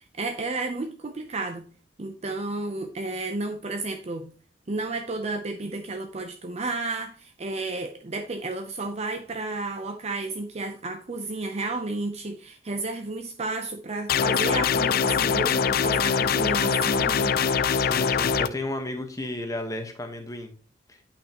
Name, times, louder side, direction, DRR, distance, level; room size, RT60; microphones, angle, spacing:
voice 1, 0.2-1.6 2.0-4.3 4.7-17.3, right 3 dB, 35° right, 0.6 m, -32 dB
sound 1, 14.1-18.5, left 6 dB, 55° left, 0.3 m, -23 dB
voice 2, 17.7-20.5 20.9-21.0, left 1 dB, 20° left, 1.1 m, -33 dB
8.7 x 5.7 x 2.9 m
head